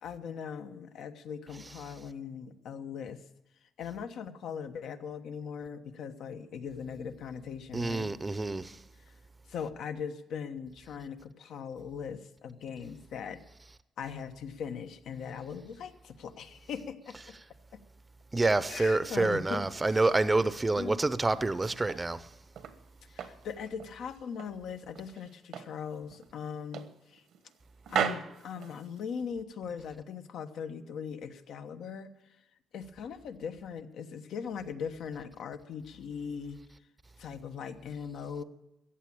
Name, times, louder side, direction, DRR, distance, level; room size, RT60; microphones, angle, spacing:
voice 1, 0.0-3.2 3.8-8.1 9.1-9.2 9.5-13.4 14.0-17.3 18.4-20.1 20.8-21.0 23.0-27.2 27.9-32.4 32.7-36.6 37.2-38.4, left 7 dB, 75° left, 1.1 m, -40 dB
voice 2, 7.7-8.8 18.3-22.2, right 2 dB, 20° right, 0.7 m, -27 dB
sound 1, 21.4-22.8 23.2-24.6 24.9-25.8 26.1-26.3 26.7-27.6 27.8-29.3, right 8 dB, 75° right, 1.2 m, -37 dB
14.5 x 8.8 x 8.6 m
cardioid pair, 90°, 0 cm